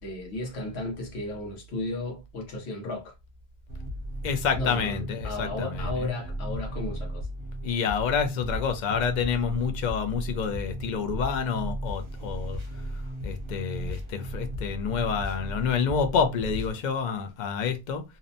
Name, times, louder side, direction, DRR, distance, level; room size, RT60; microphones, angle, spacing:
voice 1, 0.0-3.1 4.5-7.3, left 2 dB, 85° left, 1.0 m, -34 dB
sound 1, 3.7-16.7, equal, 35° right, 0.6 m, -35 dB
voice 2, 4.2-6.1 7.6-12.6 13.2-18.0, left 6 dB, 55° left, 0.5 m, -28 dB
2.7 x 2.1 x 2.6 m
omnidirectional pair, 1.1 m